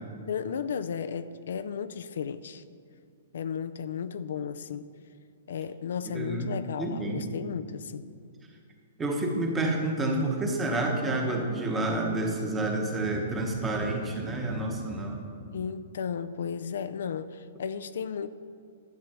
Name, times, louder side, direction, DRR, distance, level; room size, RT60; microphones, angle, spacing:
voice 1, 0.3-2.6 3.3-4.9 5.5-8.1 15.5-18.3, left 7 dB, 65° left, 12 dB, 0.4 m, -34 dB
voice 2, 6.1-7.2 9.0-15.2, right 2 dB, 10° right, 1 dB, 1.1 m, -29 dB
11.5 x 7.5 x 6.0 m, 2.4 s
hypercardioid pair, 170°, 0 cm